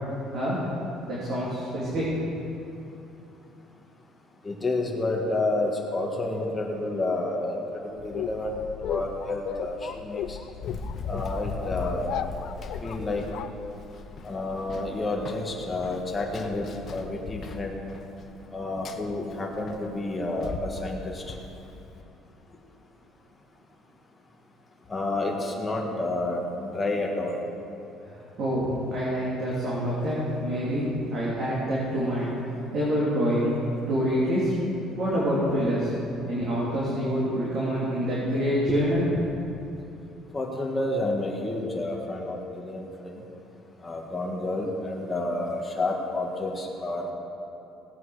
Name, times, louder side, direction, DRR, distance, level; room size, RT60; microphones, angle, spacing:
voice 1, 1.1-2.1 28.4-30.8 31.1-32.3 32.7-33.6 33.9-34.5 35.0-35.9 36.2-39.0, equal, 45° right, -7 dB, 2.8 m, -26 dB
voice 2, 4.4-10.4 11.1-12.1 12.8-13.2 14.2-16.6 16.9-17.8 18.5-21.2 24.9-27.4 38.7-39.1 40.3-43.2 43.8-47.1, left 2 dB, 15° left, -1 dB, 1.6 m, -30 dB
sound 1, 8.0-14.2, left 9 dB, 55° left, 0.4 m, -37 dB
Run, 10.6-22.0, left 4 dB, 35° left, 0.9 m, -39 dB
18.5 x 8.4 x 4.9 m, 2.8 s
cardioid pair, 155°, 0 cm